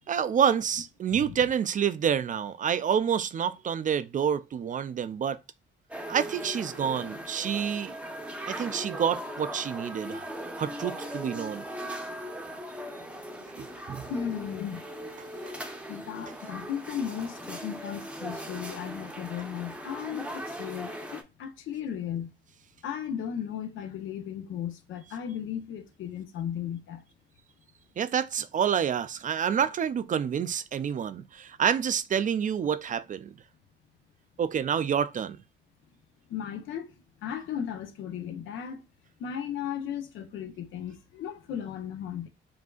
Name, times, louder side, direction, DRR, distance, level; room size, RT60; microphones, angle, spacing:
voice 1, 0.1-5.4 6.1-8.0 8.5-10.3 10.6-11.6 13.6-14.1 15.5-15.6 28.0-33.3 34.4-35.4, right 8 dB, 40° right, 0.4 m, -28 dB
sound 1, 5.9-21.2, equal, 5° right, 0.7 m, -39 dB
voice 2, 14.1-14.8 15.9-22.3 22.8-27.0 36.3-36.9 37.2-38.8 39.2-42.3, left 9 dB, 80° left, 0.8 m, -35 dB
5.0 x 2.7 x 2.3 m
cardioid pair, 90°, 20 cm